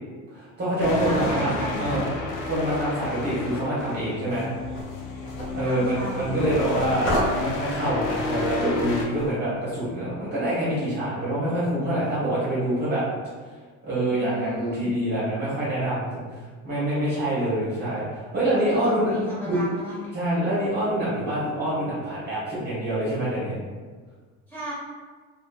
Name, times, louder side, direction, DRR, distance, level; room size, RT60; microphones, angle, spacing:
voice 1, 0.3-2.1 2.4-4.5 5.5-13.0 13.8-16.2 16.6-19.1 19.4-19.6 20.1-23.6, right 1 dB, 30° right, -9 dB, 0.9 m, -26 dB
sound 1, 0.8-9.0, left 3 dB, 80° left, 0.6 m, -31 dB
voice 2, 1.0-2.1 5.6-6.3 14.1-14.9 18.6-20.1 24.5-24.7, equal, 5° left, -9 dB, 1.4 m, -34 dB
sound 2, 4.3-9.4, equal, 35° left, 1.0 m, -32 dB
2.7 x 2.5 x 2.2 m, 1.5 s
cardioid pair, 115°, 34 cm